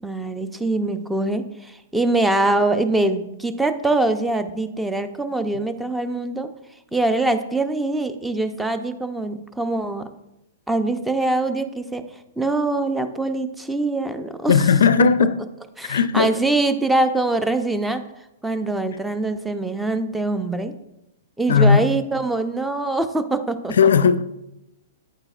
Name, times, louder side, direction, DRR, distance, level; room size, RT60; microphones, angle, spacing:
voice 1, 0.0-6.5 6.9-10.1 10.7-14.7 15.8-18.0 18.4-20.7 21.4-23.7, right 2 dB, 5° right, 0.6 m, -23 dB
voice 2, 14.5-15.4 15.9-16.3 21.5-21.9 23.8-24.2, left 6 dB, 65° left, 0.4 m, -16 dB
9.1 x 8.8 x 2.4 m
figure-of-eight pair, 110°, 0 cm